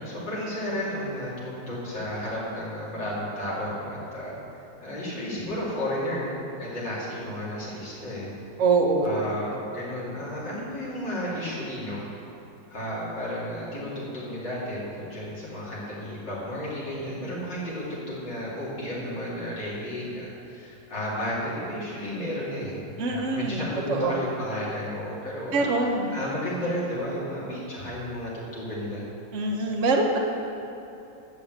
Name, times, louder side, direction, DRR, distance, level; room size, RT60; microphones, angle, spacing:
voice 1, 0.0-4.3 4.8-8.3 9.0-12.0 12.7-25.6 26.1-29.0, equal, 80° left, -8 dB, 4.2 m, -33 dB
voice 2, 8.6-9.3 23.0-24.2 25.5-26.2 29.3-30.2, right 3 dB, 45° right, 1 dB, 1.4 m, -24 dB
12.5 x 7.1 x 8.1 m, 2.9 s
omnidirectional pair, 1.9 m